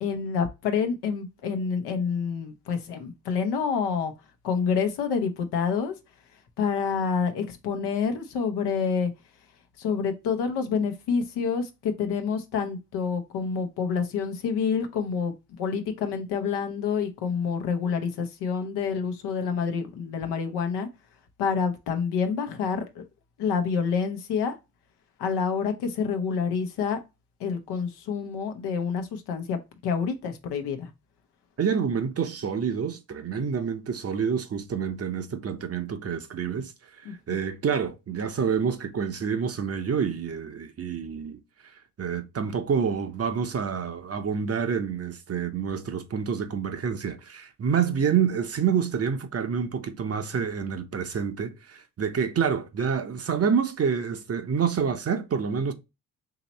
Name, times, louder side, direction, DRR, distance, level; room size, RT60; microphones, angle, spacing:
voice 1, 0.0-4.1 4.4-5.9 6.6-9.1 9.8-20.9 21.4-23.0 23.4-24.6 25.2-27.0 27.4-30.9 37.0-37.1, left 6 dB, 85° left, 0.9 m, -28 dB
voice 2, 31.6-36.7 37.0-41.4 42.0-55.7, right 7 dB, 40° right, 0.7 m, -28 dB
3.0 x 2.8 x 4.1 m
cardioid pair, 70°, 39 cm